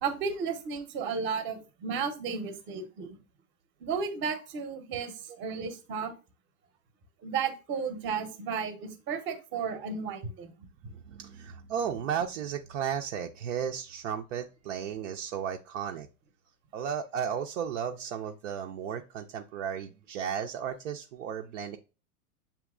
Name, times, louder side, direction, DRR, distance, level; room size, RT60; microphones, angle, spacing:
voice 1, 0.0-3.2 3.8-6.1 7.2-10.5, right 6 dB, 25° right, 8 dB, 0.9 m, -33 dB
voice 2, 10.9-16.1 16.7-21.8, right 8 dB, 55° right, 4 dB, 0.6 m, -34 dB
7.1 x 2.8 x 2.5 m, 0.31 s
hypercardioid pair, 120°, 45 cm